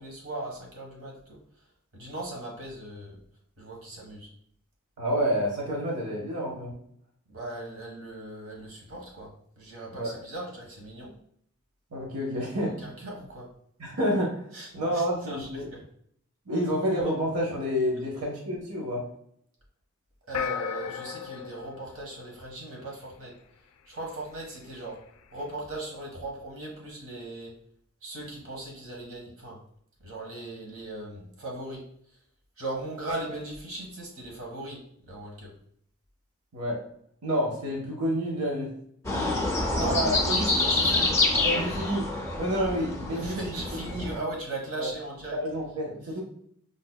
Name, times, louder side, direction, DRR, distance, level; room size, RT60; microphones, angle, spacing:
voice 1, 0.0-1.4 1.9-3.2 3.6-4.3 7.3-11.1 12.6-13.5 14.5-15.8 20.2-23.3 23.9-25.0 25.3-27.5 28.0-29.6 30.0-31.8 32.6-35.5 39.7-41.1 43.1-45.4 46.1-46.2, right 2 dB, 65° right, -1 dB, 1.0 m, -38 dB
voice 2, 5.0-6.7 9.9-10.2 11.9-12.7 13.8-14.4 14.7-15.7 16.5-19.0 36.5-36.8 37.2-38.7 39.7-40.1 41.4-42.1 42.4-43.5 44.8-44.9 45.3-46.2, equal, 90° right, -3 dB, 0.7 m, -29 dB
sound 1, 20.3-23.0, left 8 dB, 80° left, 0.3 m, -35 dB
sound 2, 39.0-44.2, left 2 dB, 10° left, 0.4 m, -27 dB
5.0 x 2.1 x 2.2 m, 0.67 s
head